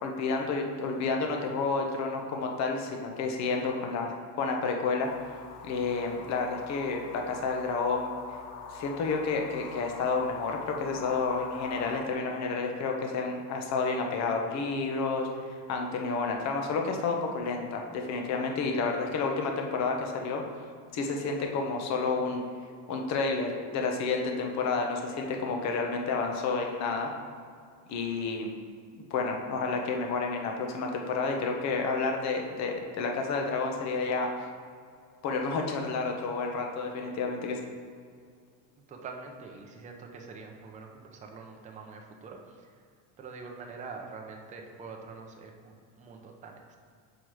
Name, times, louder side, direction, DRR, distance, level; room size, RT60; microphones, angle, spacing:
voice 1, 0.0-5.1 5.6-8.1 8.7-20.4 20.9-22.4 22.9-27.1 27.9-28.5 28.9-34.3 35.2-37.6, left 4 dB, 40° left, 2 dB, 0.9 m, -30 dB
sound 1, 5.0-12.0, left 6 dB, 70° left, 0.9 m, -43 dB
voice 2, 38.9-42.7 43.2-46.8, right 4 dB, 20° right, 1 dB, 0.6 m, -45 dB
5.8 x 4.9 x 4.7 m, 2.1 s
cardioid pair, 155°, 40 cm